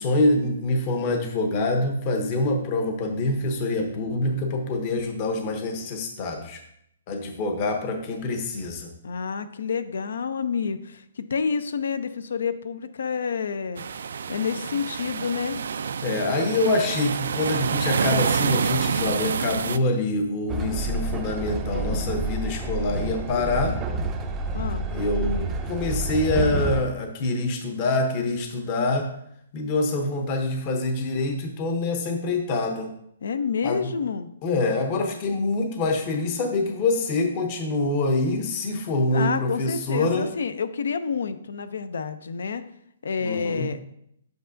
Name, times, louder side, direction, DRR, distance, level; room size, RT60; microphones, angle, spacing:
voice 1, 0.0-6.6 7.1-8.9 16.0-23.8 24.9-29.1 29.5-32.9 33.6-33.9 34.4-40.3 43.2-43.7, left 2 dB, 30° left, 4 dB, 0.8 m, -25 dB
voice 2, 9.0-13.8 14.3-15.6 24.5-24.9 33.2-34.3 39.1-42.6 43.0-43.8, left 6 dB, 75° left, 12 dB, 0.5 m, -28 dB
sound 1, 13.8-19.8, right 6 dB, 75° right, 0.3 m, -27 dB
Train, 20.5-26.8, right 2 dB, 15° right, 0.5 m, -28 dB
7.9 x 5.6 x 2.6 m, 0.73 s
hypercardioid pair, 160°, 0 cm